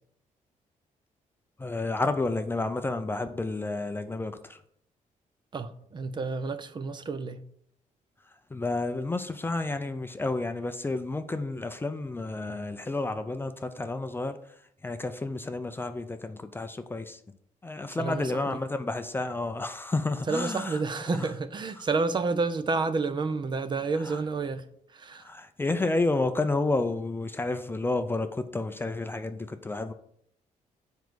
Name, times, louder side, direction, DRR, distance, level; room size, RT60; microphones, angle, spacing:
voice 1, 1.6-4.6 8.5-14.4 14.8-17.2 17.6-20.8 21.1-21.3 24.0-24.2 25.2-29.9, left 2 dB, 15° left, 0.5 m, -30 dB
voice 2, 5.5-7.4 17.9-18.6 20.3-24.6 24.9-25.3, right 4 dB, 35° right, 0.6 m, -30 dB
7.2 x 4.6 x 6.2 m
cardioid pair, 135°, 14 cm